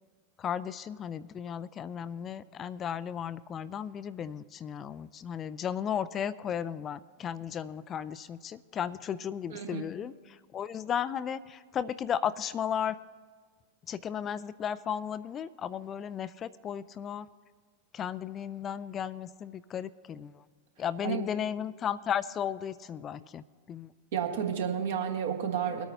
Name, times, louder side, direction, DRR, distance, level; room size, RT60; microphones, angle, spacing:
voice 1, 0.4-13.0 13.9-17.3 17.9-20.4 20.8-23.9, left 8 dB, 25° left, 15 dB, 0.3 m, -35 dB
voice 2, 9.5-9.8 21.0-21.2 24.1-25.8, right 8 dB, 60° right, 3 dB, 1.5 m, -31 dB
23.5 x 9.0 x 2.8 m, 1.6 s
figure-of-eight pair, 90°, 0 cm